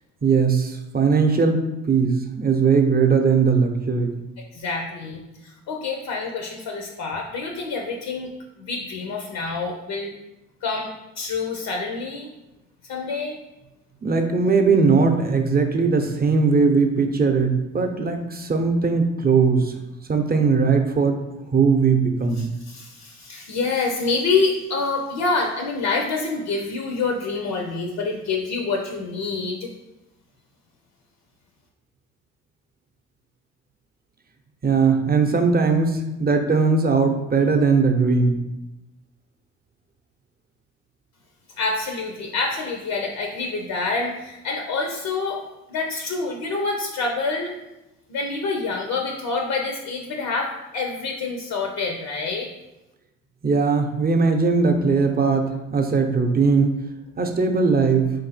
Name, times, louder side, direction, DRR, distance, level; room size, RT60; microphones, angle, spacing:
voice 1, 0.2-4.1 14.0-19.8 20.1-21.2 21.5-22.5 34.6-38.4 53.4-56.8 57.2-58.1, right 4 dB, 25° right, 4 dB, 0.7 m, -19 dB
voice 2, 4.5-8.3 8.6-10.1 10.6-12.3 12.9-13.4 22.4-29.7 41.6-45.4 45.7-47.5 48.1-52.5, left 3 dB, 65° left, 2 dB, 0.7 m, -27 dB
3.6 x 2.6 x 4.0 m, 0.96 s
hypercardioid pair, 55°, 37 cm